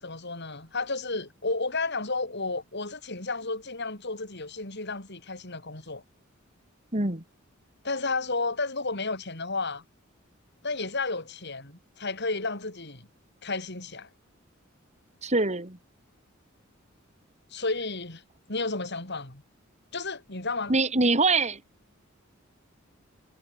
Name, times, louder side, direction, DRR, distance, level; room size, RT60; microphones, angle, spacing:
voice 1, 0.0-6.0 7.8-9.8 10.6-13.1 13.4-14.1 17.5-18.2 18.5-19.4 19.9-20.7, left 3 dB, 55° left, 5.8 m, -32 dB
voice 2, 6.9-7.2 15.2-15.8 20.7-21.6, right 3 dB, 35° right, 3.5 m, -24 dB
head